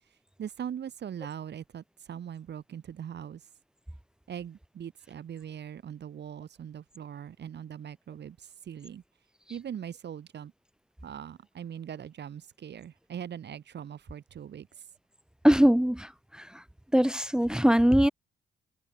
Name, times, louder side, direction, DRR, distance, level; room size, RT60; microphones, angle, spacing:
voice 1, 0.4-3.5 4.3-9.0 9.5-10.5 11.0-14.9, right 9 dB, 60° right, 6.2 m, -41 dB
voice 2, 15.4-16.0 16.9-18.1, equal, 5° right, 0.7 m, -21 dB
open air
cardioid pair, 90°, 20 cm